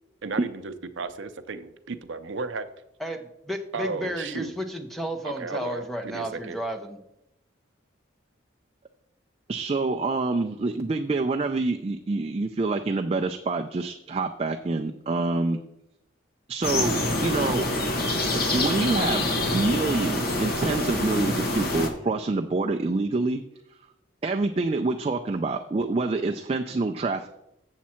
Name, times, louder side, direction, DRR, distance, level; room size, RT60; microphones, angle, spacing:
voice 1, 0.2-2.7 3.7-4.5 5.2-6.6, right 4 dB, 75° right, 10 dB, 0.6 m, -34 dB
voice 2, 3.4-7.0, equal, ahead, 3 dB, 0.7 m, -32 dB
voice 3, 9.5-15.6 16.5-17.7 18.5-23.4 24.2-27.3, right 3 dB, 30° right, 4 dB, 0.3 m, -26 dB
sound 1, 16.6-21.9, left 1 dB, 50° left, 1.0 m, -26 dB
7.4 x 7.1 x 4.3 m, 0.84 s
head